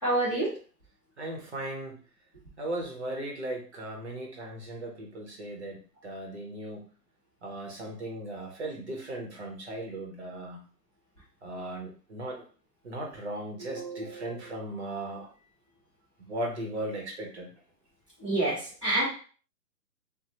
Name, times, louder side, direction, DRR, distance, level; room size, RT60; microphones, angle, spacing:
voice 1, 0.0-0.5 13.6-14.5 18.2-19.0, right 2 dB, 20° left, -10 dB, 0.6 m, -29 dB
voice 2, 1.2-1.9 2.6-6.9 7.4-10.6 11.4-12.4 12.8-15.3 16.3-17.5, right 1 dB, 40° right, 0 dB, 0.7 m, -37 dB
2.9 x 2.1 x 2.8 m, 0.40 s
hypercardioid pair, 165°, 50 cm